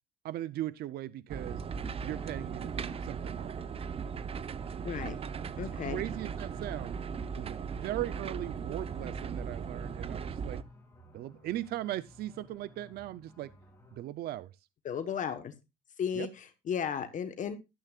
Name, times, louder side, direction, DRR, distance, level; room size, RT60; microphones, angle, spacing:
voice 1, 0.2-1.6 2.0-3.6 5.8-7.0 7.3-10.6 11.1-13.5 13.9-14.5 16.1-16.3, right 14 dB, 70° right, 0.6 m, -38 dB
sound 1, 1.3-10.6, right 6 dB, 35° right, 0.7 m, -38 dB
sound 2, 1.7-14.0, left 1 dB, 15° left, 4.4 m, -57 dB
voice 2, 5.6-6.0 14.8-15.5 16.0-17.5, left 8 dB, 50° left, 1.2 m, -34 dB
13.0 x 12.5 x 2.4 m
cardioid pair, 110°, 17 cm